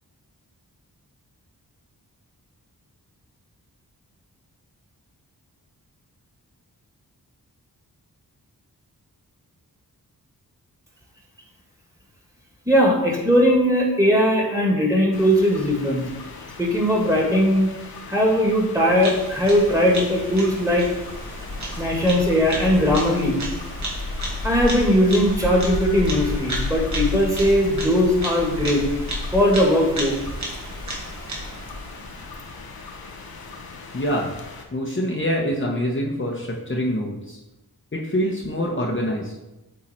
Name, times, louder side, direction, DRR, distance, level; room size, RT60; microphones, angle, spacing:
voice 1, 12.7-16.0 16.6-17.7 18.1-20.9 21.8-23.4 24.4-28.8 29.3-30.2, equal, 10° right, -1 dB, 2.2 m, -19 dB
sound 1, 15.1-34.6, left 3 dB, 70° left, 1.1 m, -34 dB
Bird vocalization bird call bird song, 19.0-32.2, right 1 dB, 50° right, 1.8 m, -34 dB
voice 2, 33.9-34.3 34.7-37.4 37.9-39.3, equal, 30° left, -2 dB, 1.1 m, -25 dB
8.4 x 3.8 x 4.4 m, 0.99 s
cardioid pair, 55°, 37 cm